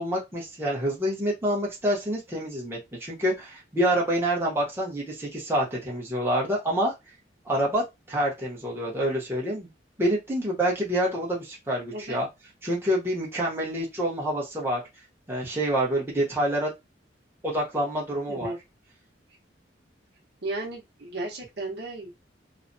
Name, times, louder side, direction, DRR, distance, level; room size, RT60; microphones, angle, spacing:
voice 1, 0.0-6.9 7.5-9.7 10.0-12.3 12.6-14.8 15.3-16.7 17.4-18.5, right 1 dB, 15° right, 0.9 m, -27 dB
voice 2, 20.4-22.1, right 2 dB, 65° right, 0.9 m, -34 dB
3.1 x 2.1 x 2.6 m
head